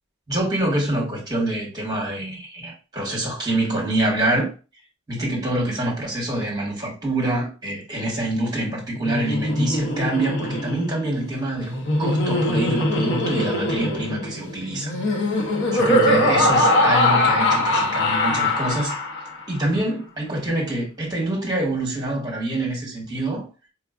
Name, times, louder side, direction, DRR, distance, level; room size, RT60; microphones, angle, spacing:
voice 1, 0.3-4.5 5.1-14.9 15.7-19.0 19.5-23.5, right 1 dB, 20° right, 1.2 m, -26 dB
Laughter, 9.0-19.4, left 1 dB, 55° left, 0.7 m, -22 dB
4.7 x 2.3 x 2.4 m
head